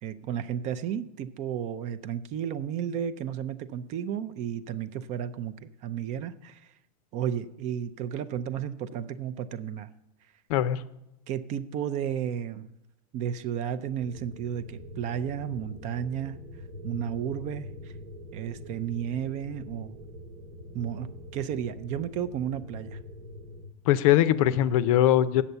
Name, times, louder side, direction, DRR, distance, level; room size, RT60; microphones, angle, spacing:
voice 1, 0.0-6.7 7.1-9.9 11.3-12.7 13.1-16.4 16.8-17.9 18.3-20.0 20.7-23.0, right 9 dB, 35° right, 14 dB, 0.5 m, -33 dB
voice 2, 10.5-10.8 23.9-25.4, left 12 dB, 55° left, 15 dB, 0.6 m, -21 dB
sound 1, 14.0-23.7, left 1 dB, 75° right, 1.2 m, -44 dB
8.2 x 7.1 x 6.7 m, 0.91 s
supercardioid pair, 130°, 20 cm